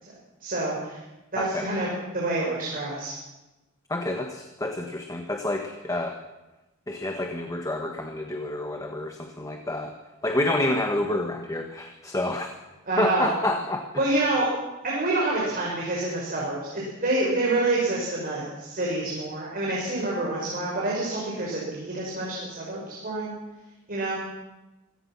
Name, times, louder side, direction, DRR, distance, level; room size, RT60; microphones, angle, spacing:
voice 1, 0.4-1.0 1.3-3.1 12.9-13.3 14.0-14.5 14.8-23.3 23.9-24.2, right 2 dB, 45° right, -4 dB, 5.5 m, -27 dB
voice 2, 1.4-1.7 3.9-6.2 6.9-10.0 10.2-12.5 13.0-14.2, left 1 dB, 15° left, 4 dB, 1.4 m, -28 dB
25.5 x 17.0 x 6.0 m, 1.0 s
head